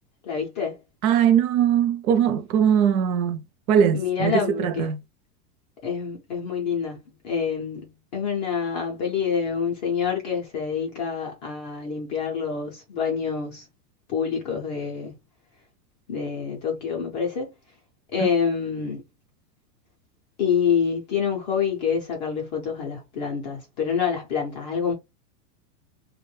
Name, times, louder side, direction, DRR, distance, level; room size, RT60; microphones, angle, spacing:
voice 1, 0.2-0.8 3.9-4.9 5.8-13.7 14.1-15.1 16.1-17.5 18.1-19.0 20.4-24.9, left 6 dB, 30° left, 0.4 m, -27 dB
voice 2, 1.0-3.4 3.7-5.0, right 8 dB, 60° right, 0.6 m, -20 dB
2.4 x 2.2 x 3.1 m
supercardioid pair, 155°, 49 cm